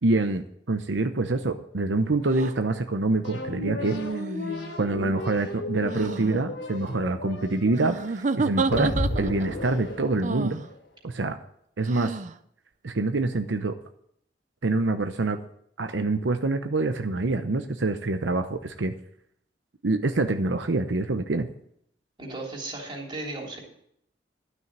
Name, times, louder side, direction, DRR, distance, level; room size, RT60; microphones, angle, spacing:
voice 1, 0.0-4.0 4.8-10.6 11.0-11.4 11.8-12.2 12.8-13.8 14.6-15.4 15.8-18.9 19.8-21.5, right 2 dB, 80° right, 8 dB, 0.8 m, -26 dB
sound 1, 2.3-2.5 3.8-4.7 5.8-6.4 7.8-9.5 10.2-10.7 11.9-12.3, right 3 dB, 45° right, 0.6 m, -30 dB
sound 2, 3.2-10.7, left 1 dB, 75° left, 3.1 m, -34 dB
voice 2, 22.2-23.6, right 2 dB, 25° right, -1 dB, 3.4 m, -35 dB
12.5 x 6.4 x 8.7 m, 0.71 s
head